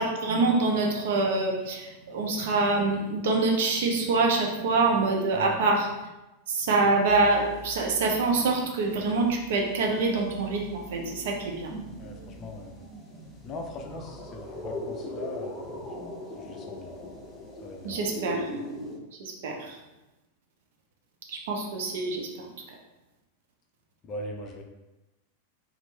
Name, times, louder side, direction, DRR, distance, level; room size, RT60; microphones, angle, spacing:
voice 1, 0.0-5.9 6.5-11.7 17.8-18.5 19.2-19.8 21.3-22.5, right 3 dB, 55° right, 0 dB, 0.5 m, -25 dB
sound 1, 7.1-8.6 8.9-19.0, equal, 10° left, 0.8 m, -41 dB
voice 2, 12.0-12.9 13.4-15.9 16.4-17.0 17.6-18.0 24.0-24.6, left 2 dB, 30° left, 2 dB, 0.4 m, -40 dB
2.9 x 2.0 x 3.1 m, 1.0 s
figure-of-eight pair, 90°, 0 cm